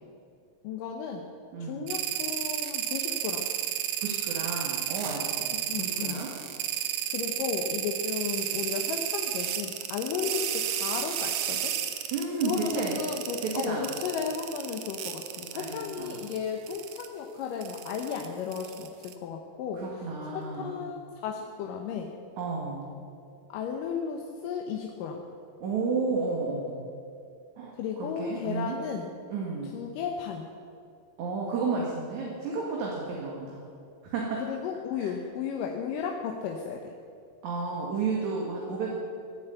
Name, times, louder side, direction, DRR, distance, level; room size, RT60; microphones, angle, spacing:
voice 1, 0.6-1.3 1.6-3.4 5.5-6.2 7.1-11.7 12.4-19.8 20.3-22.1 23.5-25.2 27.7-29.1 29.7-30.5 34.4-36.9, left 7 dB, 75° left, 1 dB, 2.4 m, -34 dB
voice 2, 1.5-1.9 4.0-6.3 12.1-13.0 13.4-13.9 15.5-16.2 19.7-20.8 22.4-22.9 25.6-26.8 27.6-28.8 29.3-29.8 31.2-33.6 34.0-34.4 35.0-35.1 37.4-39.0, right 4 dB, 60° right, -2 dB, 2.9 m, -32 dB
sound 1, 1.9-16.4 16.7-17.1 17.6-19.1, right 10 dB, 80° right, 1.5 m, -32 dB
15.5 x 9.5 x 8.1 m, 2.5 s
omnidirectional pair, 4.2 m